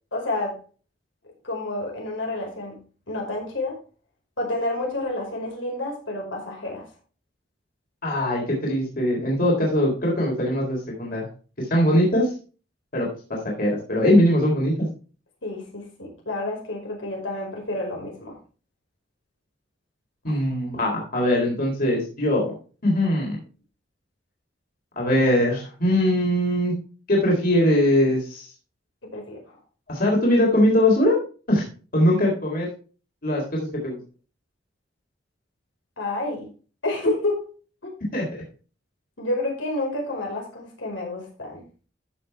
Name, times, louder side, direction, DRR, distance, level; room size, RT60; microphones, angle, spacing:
voice 1, 0.1-0.6 1.4-2.8 3.1-3.8 4.4-6.9 15.4-18.4 20.3-20.4 29.0-29.6 36.0-36.5 36.8-37.5 37.8-37.9 39.2-41.6, left 2 dB, 85° left, -1 dB, 5.2 m, -29 dB
voice 2, 8.0-11.3 11.6-12.3 12.9-14.9 20.2-22.5 22.8-23.4 25.0-26.8 27.1-28.5 29.9-31.2 31.5-31.6 31.9-32.7 33.2-34.0 38.1-38.3, left 1 dB, 50° left, -2 dB, 3.7 m, -21 dB
14.0 x 6.5 x 3.5 m, 0.37 s
head